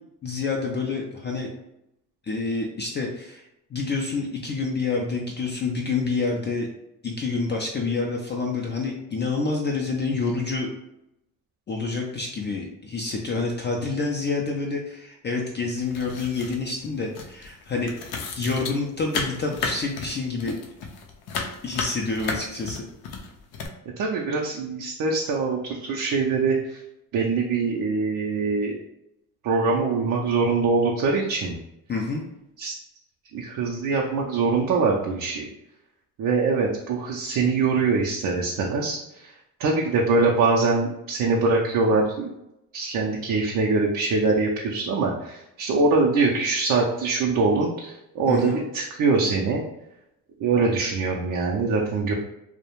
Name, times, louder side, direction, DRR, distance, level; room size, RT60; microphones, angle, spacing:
voice 1, 0.2-1.5 2.2-6.7 7.0-10.7 11.7-20.6 21.6-22.8 31.9-32.2 48.3-48.6, left 3 dB, 30° left, 0 dB, 0.4 m, -28 dB
sound 1, 15.8-16.9 17.1-23.7, left 4 dB, 80° left, 0.5 m, -34 dB
voice 2, 24.0-26.8 27.1-28.8 29.4-31.5 32.6-32.8 33.3-35.5 36.2-39.3 39.6-42.3 42.7-49.6 50.4-52.1, right 4 dB, 60° right, -1 dB, 0.5 m, -23 dB
2.3 x 2.1 x 2.9 m, 0.86 s
cardioid pair, 75°, 37 cm